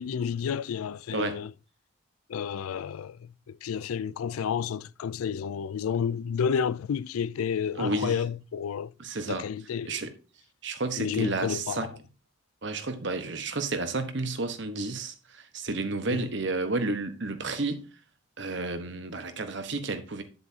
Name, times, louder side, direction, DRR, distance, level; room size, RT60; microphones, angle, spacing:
voice 1, 0.0-1.5 2.3-8.9 9.3-10.0 11.0-11.9 16.1-16.3, left 7 dB, 90° left, 0.4 m, -31 dB
voice 2, 7.7-8.2 9.0-9.4 9.8-10.1 10.6-11.9 12.6-17.8 18.4-20.2, right 3 dB, 55° right, 1.1 m, -31 dB
9.3 x 7.9 x 2.8 m
head